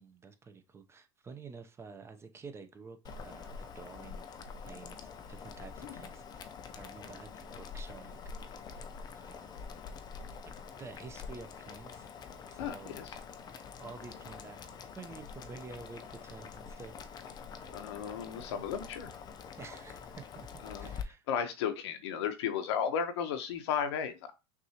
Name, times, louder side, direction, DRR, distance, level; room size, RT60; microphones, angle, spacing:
voice 1, 0.0-4.2 4.7-8.7 9.1-9.9 10.3-12.1 12.5-13.0 13.8-14.7 14.9-16.9 18.1-18.3 19.6-20.5 20.8-21.3, right 4 dB, 20° right, 0.7 m, -50 dB
Boiling, 3.0-21.0, left 6 dB, 30° left, 0.6 m, -46 dB
voice 2, 12.6-13.1 17.7-19.1 20.6-20.9 21.3-24.3, left 7 dB, 75° left, 1.0 m, -34 dB
6.0 x 2.6 x 2.9 m
supercardioid pair, 120°, 14 cm